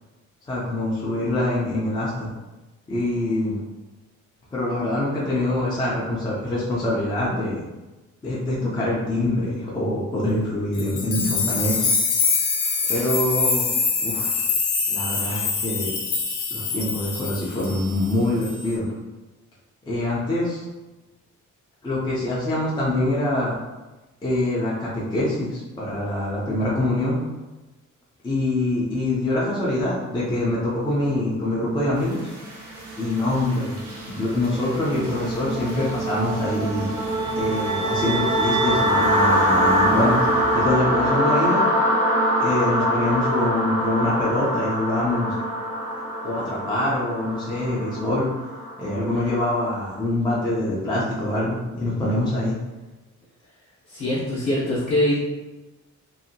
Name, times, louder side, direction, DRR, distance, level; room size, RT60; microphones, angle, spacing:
voice 1, 0.5-2.3 2.9-3.6 4.5-7.6 8.2-11.8 12.9-13.7 14.0-14.4 14.9-15.9 16.5-18.9 19.9-20.7 21.8-23.5 24.2-27.2 28.2-32.2 33.0-33.8 34.1-41.6 42.4-45.3 46.2-48.3 48.8-52.6, left 1 dB, 15° left, -6 dB, 0.4 m, -24 dB
sound 1, 10.8-18.1 18.4-18.8, left 5 dB, 85° left, 0.6 m, -25 dB
sound 2, 32.1-49.9, equal, 80° right, 0.8 m, -24 dB
sound 3, 36.9-41.2, right 1 dB, 60° right, 0.4 m, -28 dB
voice 2, 53.9-55.2, left 1 dB, 45° left, -9 dB, 0.7 m, -23 dB
2.7 x 2.4 x 2.6 m, 1.1 s
wide cardioid pair, 180°, 30 cm